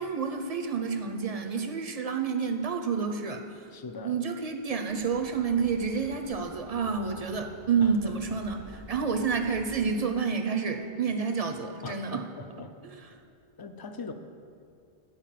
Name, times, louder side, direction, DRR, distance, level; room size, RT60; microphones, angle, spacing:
voice 1, 0.0-3.4 4.0-12.2 12.9-13.0, right 5 dB, 45° right, 5 dB, 0.6 m, -29 dB
voice 2, 3.7-4.2 7.8-8.1 11.8-12.7 13.6-14.1, left 4 dB, 35° left, 7 dB, 0.4 m, -41 dB
sound 1, 4.8-9.9, right 1 dB, 60° left, 1.9 m, -49 dB
10.5 x 4.8 x 7.4 m, 2.4 s
omnidirectional pair, 1.1 m